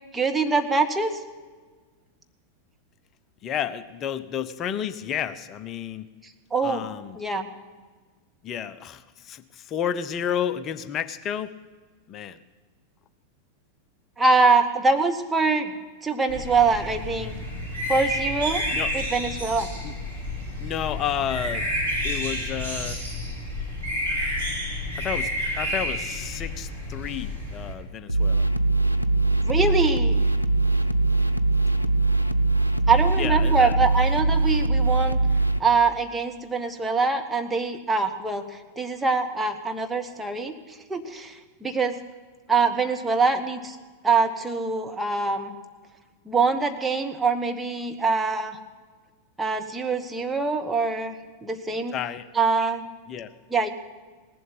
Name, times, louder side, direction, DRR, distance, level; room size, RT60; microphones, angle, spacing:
voice 1, 0.1-1.2 6.5-6.9 7.1-7.5 14.2-15.7 16.0-17.3 17.9-18.6 18.9-19.7 29.4-30.2 32.9-35.2 35.6-40.5 40.9-42.0 42.5-43.8 44.0-45.5 46.2-48.6 49.4-51.1 51.4-52.0 52.3-52.9 53.5-53.7, right 4 dB, 10° right, 5 dB, 1.4 m, -24 dB
voice 2, 3.4-6.1 6.6-7.2 8.4-11.6 12.1-12.4 18.7-18.9 19.8-19.9 20.6-21.7 22.0-23.0 25.0-25.3 25.5-28.4 33.2-33.8 51.9-52.3 53.1-53.3, left 9 dB, 30° left, 13 dB, 0.7 m, -31 dB
sound 1, 16.3-27.7, left 1 dB, 75° right, 4.8 m, -30 dB
sound 2, 28.1-35.6, right 2 dB, 90° left, 0.6 m, -22 dB
19.0 x 7.7 x 10.0 m, 1.4 s
figure-of-eight pair, 90°, 0 cm